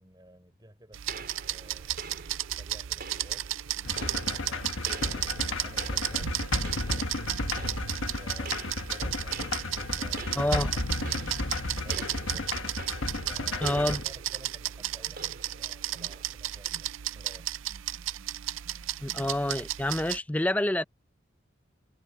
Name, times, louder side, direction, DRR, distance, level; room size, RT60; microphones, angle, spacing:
voice 1, 0.0-2.0 2.6-3.6 3.9-7.2 8.1-9.4 9.7-10.8 11.2-12.9 13.1-17.5, right 1 dB, 20° right, 4.9 m, -54 dB
sound 1, 0.9-20.2, right 13 dB, 85° right, 0.5 m, -34 dB
sound 2, 1.1-17.4, right 4 dB, 50° right, 5.1 m, -47 dB
sound 3, 3.8-14.0, left 2 dB, 85° left, 1.5 m, -33 dB
voice 2, 10.3-10.7 13.6-14.0 19.0-20.8, left 1 dB, 10° left, 0.5 m, -27 dB
head